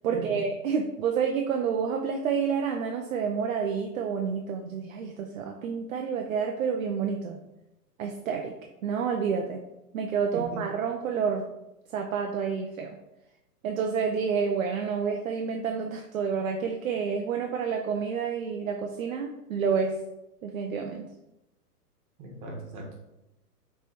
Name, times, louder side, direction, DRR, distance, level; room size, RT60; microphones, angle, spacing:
voice 1, 0.0-7.4 8.0-8.5 8.8-9.6 9.9-11.5 11.9-13.0 13.6-20.0 20.4-21.0, right 6 dB, 55° right, 3 dB, 0.6 m, -29 dB
voice 2, 22.2-22.9, right 2 dB, 30° right, -1 dB, 1.3 m, -38 dB
5.3 x 3.3 x 2.9 m, 0.92 s
hypercardioid pair, 145°, 47 cm